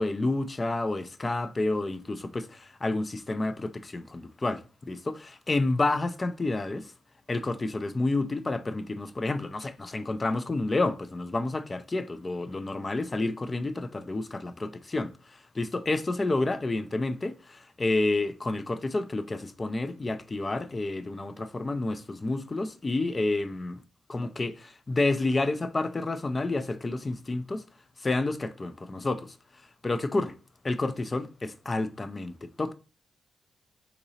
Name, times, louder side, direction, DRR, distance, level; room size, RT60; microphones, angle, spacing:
voice 1, 0.0-6.9 7.3-23.8 24.1-27.7 28.0-30.4 30.6-32.7, left 2 dB, 30° left, 0.3 m, -30 dB
3.8 x 2.7 x 2.7 m
supercardioid pair, 55°, 0 cm